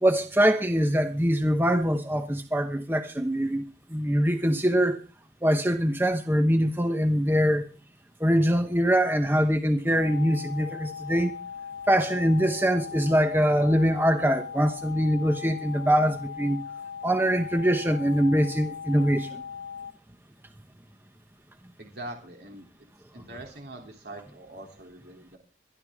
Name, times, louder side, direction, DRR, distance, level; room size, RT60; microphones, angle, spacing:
voice 1, 0.0-3.6 3.9-5.0 5.4-7.7 8.2-11.3 11.9-16.6 17.0-19.4, equal, 10° right, 1.0 m, -23 dB
sound 1, 9.9-19.9, left 7 dB, 70° left, 1.0 m, -39 dB
voice 2, 21.8-22.7 23.1-25.4, right 1 dB, 65° right, 3.0 m, -43 dB
23.0 x 12.0 x 3.6 m
head